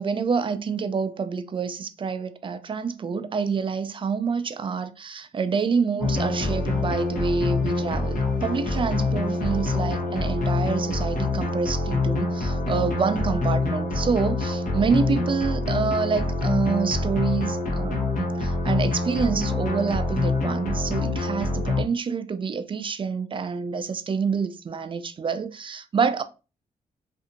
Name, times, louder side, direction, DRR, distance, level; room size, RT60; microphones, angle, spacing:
voice 1, 0.0-26.2, right 5 dB, 35° right, 0.4 m, -27 dB
sound 1, 6.0-21.8, left 3 dB, 65° left, 0.9 m, -26 dB
2.7 x 2.5 x 2.5 m
cardioid pair, 65°, 15 cm